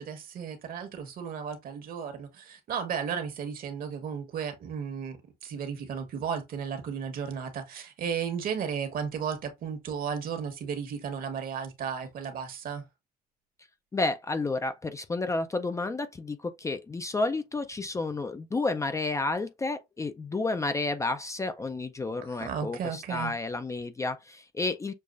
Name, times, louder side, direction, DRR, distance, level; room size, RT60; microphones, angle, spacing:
voice 1, 0.0-12.8 22.4-23.3, right 7 dB, 60° right, 1.3 m, -34 dB
voice 2, 13.9-24.9, left 3 dB, 20° left, 0.4 m, -31 dB
6.5 x 2.4 x 2.4 m
cardioid pair, 110°, 17 cm